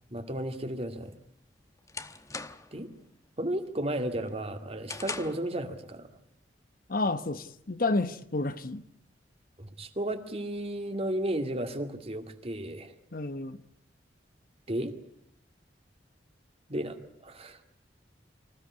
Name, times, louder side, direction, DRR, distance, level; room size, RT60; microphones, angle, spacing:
voice 1, 0.1-1.1 2.7-2.9 3.4-6.1 9.6-12.9 14.7-14.9 16.7-17.6, right 1 dB, 35° right, 2.2 m, -33 dB
sound 1, 1.1-2.8 3.2-3.6 4.0-5.5, left 4 dB, 20° left, 1.0 m, -41 dB
voice 2, 6.9-8.8 13.1-13.6, left 2 dB, 55° left, 1.0 m, -30 dB
25.5 x 16.0 x 9.7 m
head